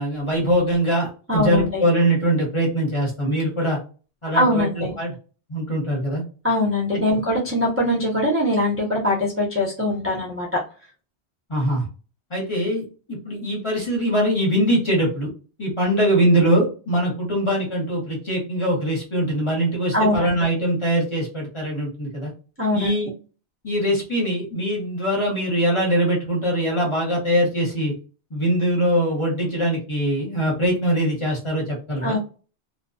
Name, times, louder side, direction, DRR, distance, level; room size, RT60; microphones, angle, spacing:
voice 1, 0.0-3.8 4.2-5.1 5.5-6.2 11.5-11.9 12.3-15.3 15.6-22.3 22.7-23.1 23.6-27.9 28.3-32.2, right 1 dB, 30° left, -2 dB, 0.9 m, -22 dB
voice 2, 1.3-1.8 4.3-4.9 6.4-10.6 19.9-20.4 22.6-22.9 32.0-32.2, left 1 dB, 15° right, -5 dB, 0.5 m, -22 dB
2.3 x 2.2 x 2.5 m, 0.36 s
omnidirectional pair, 1.2 m